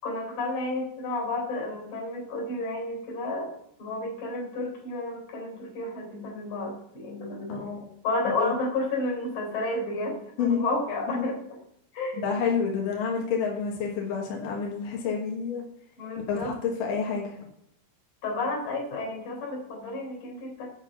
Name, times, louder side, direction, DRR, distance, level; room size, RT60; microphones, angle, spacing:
voice 1, 0.0-3.5 3.8-7.6 8.0-11.4 11.9-12.2 16.0-16.5 18.2-20.7, left 2 dB, 45° left, 0 dB, 5.1 m, -31 dB
voice 2, 7.5-7.9 8.4-8.5 10.4-10.6 11.1-11.2 12.2-15.6 16.3-17.5, left 6 dB, 65° left, -1 dB, 2.2 m, -29 dB
9.0 x 6.1 x 6.2 m, 0.71 s
omnidirectional pair, 5.8 m